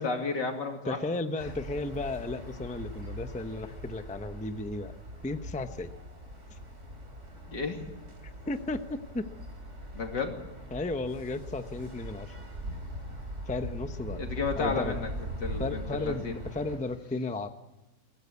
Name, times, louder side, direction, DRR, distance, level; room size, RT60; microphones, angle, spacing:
voice 1, 0.0-1.0 7.5-7.8 9.9-10.4 14.1-15.1 15.4-16.4, left 4 dB, 85° left, 3 dB, 3.3 m, -32 dB
voice 2, 0.8-5.0 5.2-5.9 6.5-6.6 8.5-8.8 9.1-9.2 10.7-12.4 13.5-14.3 14.6-15.0 15.6-17.5, left 2 dB, 5° left, 8 dB, 0.6 m, -34 dB
sound 1, 1.4-16.8, equal, 40° right, 4.0 m, -41 dB
22.5 x 16.0 x 8.4 m, 1.1 s
omnidirectional pair, 1.8 m